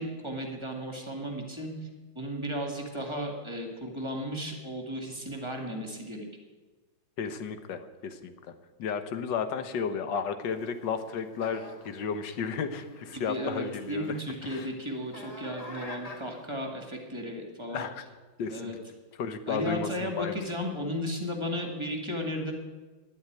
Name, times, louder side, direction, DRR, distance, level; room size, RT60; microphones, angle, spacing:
voice 1, 0.0-1.9 2.2-6.3 13.1-17.9 18.5-18.8 19.5-22.5, equal, 15° right, 2 dB, 1.7 m, -34 dB
voice 2, 7.2-8.3 8.8-14.7 17.7-18.0 18.4-18.7 19.2-20.4, left 6 dB, 70° left, 9 dB, 1.7 m, -33 dB
sound 1, 10.4-16.6, left 1 dB, 20° left, 1.6 m, -48 dB
10.5 x 8.2 x 9.3 m, 1.3 s
omnidirectional pair, 2.1 m